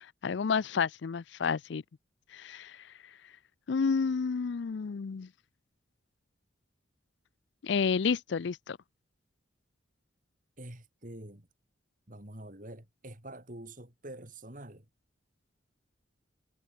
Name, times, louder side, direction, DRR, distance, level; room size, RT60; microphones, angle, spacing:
voice 1, 0.0-1.8 2.3-2.9 3.7-5.3 7.6-8.8, left 5 dB, 65° left, 0.4 m, -30 dB
voice 2, 10.6-11.5 12.1-14.9, right 1 dB, 45° right, 3.7 m, -46 dB
head